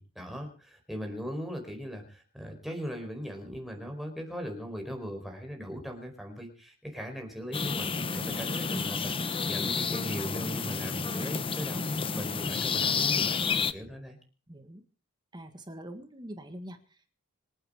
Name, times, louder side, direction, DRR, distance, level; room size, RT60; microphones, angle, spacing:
voice 1, 0.0-11.8 12.1-14.2, equal, ahead, 2 dB, 4.5 m, -39 dB
sound 1, 7.5-13.7, left 5 dB, 25° left, 0.7 m, -30 dB
voice 2, 14.5-14.8 15.3-17.1, equal, 20° right, 7 dB, 1.7 m, -44 dB
26.5 x 9.0 x 5.0 m, 0.40 s
head